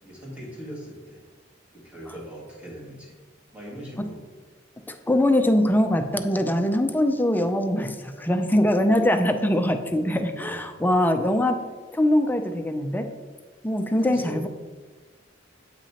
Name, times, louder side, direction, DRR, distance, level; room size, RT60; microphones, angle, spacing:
voice 1, 0.0-1.2 1.7-3.1 3.5-4.2 5.3-5.6 10.3-10.7 14.1-14.5, equal, 5° right, -5 dB, 2.0 m, -40 dB
voice 2, 4.9-11.6 11.9-13.1 13.6-14.5, left 1 dB, 10° left, 6 dB, 0.4 m, -22 dB
8.6 x 5.9 x 2.9 m, 1.3 s
head